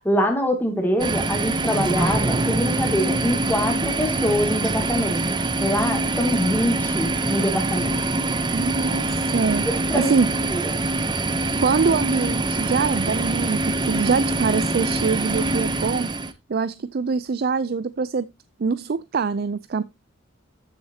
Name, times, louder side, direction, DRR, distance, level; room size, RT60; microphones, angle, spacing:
voice 1, 0.0-5.2 5.6-8.0 9.7-10.1 10.5-10.6, equal, 10° left, 2.5 m, -24 dB
sound 1, 1.0-16.3, right 2 dB, 25° right, 0.7 m, -24 dB
voice 2, 8.5-9.6 9.9-10.3 11.6-16.1 16.5-18.3 18.6-19.8, right 5 dB, 50° right, 0.4 m, -24 dB
13.0 x 6.6 x 2.8 m
head